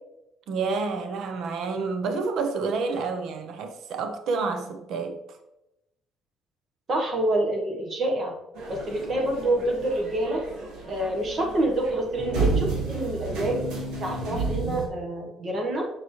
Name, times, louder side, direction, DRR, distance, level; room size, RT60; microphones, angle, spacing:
voice 1, 0.5-5.2, right 4 dB, 60° right, 0.8 m, -29 dB
voice 2, 6.9-8.3 8.7-10.4 10.9-13.6 14.0-15.9, right 1 dB, 35° right, 1.2 m, -27 dB
sound 1, 8.6-14.9, right 4 dB, 90° right, 2.0 m, -31 dB
7.0 x 6.0 x 3.2 m
cardioid pair, 150°, 0 cm